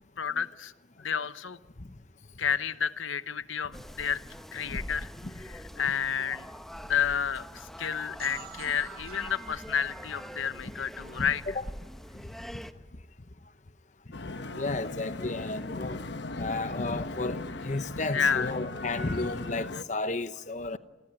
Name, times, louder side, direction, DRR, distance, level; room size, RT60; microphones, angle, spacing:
voice 1, 0.2-0.7 1.0-1.6 2.4-4.2 4.5-5.1 5.4-6.5 6.9-11.4 18.1-18.5, left 7 dB, 90° left, 0.9 m, -30 dB
sound 1, 3.7-12.7, equal, ahead, 0.9 m, -44 dB
sound 2, 8.2-11.8, right 10 dB, 50° right, 1.9 m, -49 dB
voice 2, 11.2-11.6 14.6-16.0 16.4-20.8, left 2 dB, 40° left, 0.8 m, -33 dB
sound 3, 14.1-19.8, left 2 dB, 65° left, 1.0 m, -37 dB
29.0 x 21.5 x 8.9 m
head